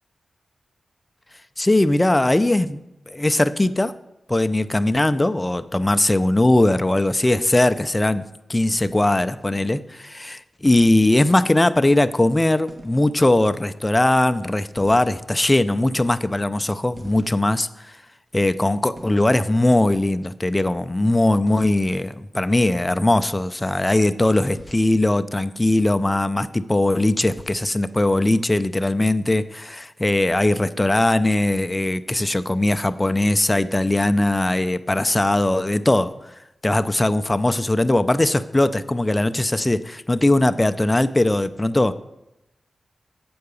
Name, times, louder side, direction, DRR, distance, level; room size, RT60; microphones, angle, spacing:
voice 1, 1.6-2.8 3.1-3.9 4.3-17.7 18.3-36.1 36.6-41.9, left 1 dB, 20° left, 12 dB, 0.4 m, -20 dB
sound 1, 8.8-9.4 10.6-11.0 12.7-13.1 14.7-15.5 16.9-17.7 18.9-19.3 21.5-21.7 24.4-25.0 27.2-27.8, right 1 dB, 40° right, 1.3 m, -44 dB
7.8 x 4.7 x 6.9 m, 0.90 s
cardioid pair, 60°, 0 cm